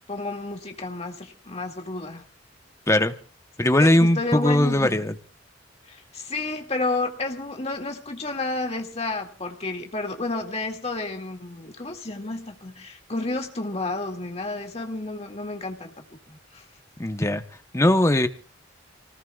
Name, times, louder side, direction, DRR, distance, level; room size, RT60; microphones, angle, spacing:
voice 1, 0.1-2.2 3.8-5.0 5.9-15.9 16.3-16.6, left 2 dB, 35° left, 3 dB, 2.1 m, -31 dB
voice 2, 2.9-3.2 3.6-5.1 17.0-17.4 17.7-18.3, left 1 dB, 15° left, 8 dB, 0.9 m, -19 dB
29.5 x 19.5 x 2.4 m, 0.35 s
head